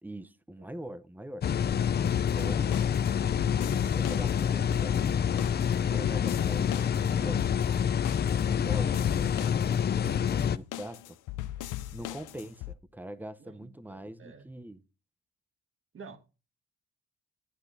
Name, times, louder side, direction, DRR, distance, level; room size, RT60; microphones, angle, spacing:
voice 1, 0.0-1.4 2.3-2.7 3.8-5.0 5.6-7.5 8.4-11.2 11.9-14.8, right 1 dB, 5° right, 0.7 m, -43 dB
sound 1, 1.4-10.6, left 8 dB, 35° left, 0.5 m, -27 dB
sound 2, 2.1-12.7, left 14 dB, 85° left, 0.7 m, -39 dB
voice 2, 13.4-14.5 15.9-16.2, right 5 dB, 45° right, 1.7 m, -50 dB
11.0 x 9.8 x 2.7 m
cardioid pair, 90°, 30 cm